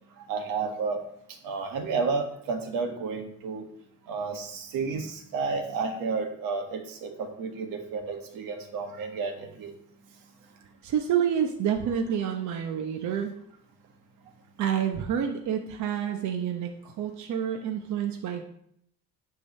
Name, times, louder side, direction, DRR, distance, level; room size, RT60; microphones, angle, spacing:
voice 1, 0.3-1.0 1.4-3.7 4.1-9.7, right 4 dB, 80° right, 5 dB, 1.6 m, -31 dB
voice 2, 10.8-13.4 14.6-18.4, right 8 dB, 55° right, 3 dB, 0.9 m, -28 dB
9.9 x 3.8 x 6.4 m, 0.71 s
cardioid pair, 145°, 33 cm